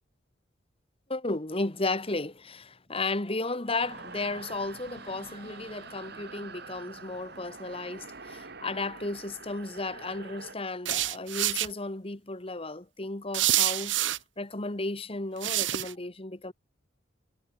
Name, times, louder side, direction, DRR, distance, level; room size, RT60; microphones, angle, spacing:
voice 1, 1.1-14.0 14.4-16.5, left 2 dB, 30° left, 1.6 m, -34 dB
sound 1, 3.8-10.5, right 4 dB, 60° right, 3.0 m, -45 dB
sound 2, 10.8-11.7 13.3-14.2 15.4-15.9, right 14 dB, 80° right, 1.1 m, -27 dB
head